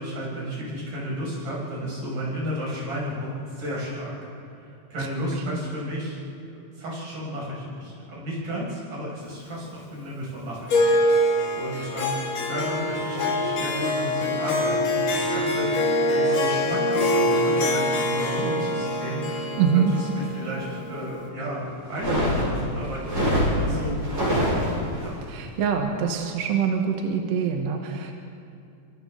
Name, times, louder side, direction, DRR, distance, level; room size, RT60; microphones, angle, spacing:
voice 1, 0.0-4.2 4.5-6.2 6.5-11.0 11.5-23.1 23.4-24.7 25.0-25.2, equal, 90° right, -6 dB, 8.1 m, -33 dB
voice 2, 5.4-5.7 11.7-11.9 19.6-19.9 25.3-28.1, right 7 dB, 60° right, 2 dB, 2.4 m, -25 dB
Harp, 10.7-21.3, left 1 dB, 80° left, 4.1 m, -24 dB
sound 1, 21.9-25.1, equal, 25° right, 6.0 m, -24 dB
28.5 x 25.0 x 4.0 m, 2.5 s
omnidirectional pair, 3.6 m